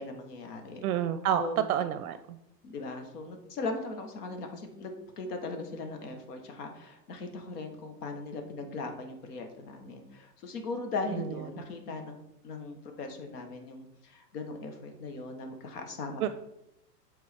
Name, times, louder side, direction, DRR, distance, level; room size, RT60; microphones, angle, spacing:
voice 1, 0.0-0.8 1.4-1.7 2.6-12.2 12.4-16.3, left 3 dB, 65° left, 5 dB, 1.4 m, -39 dB
voice 2, 0.8-1.4 1.7-2.4 11.6-11.7 16.2-16.3, right 10 dB, 60° right, 11 dB, 0.5 m, -29 dB
7.7 x 3.7 x 3.5 m, 0.84 s
hypercardioid pair, 115°, 49 cm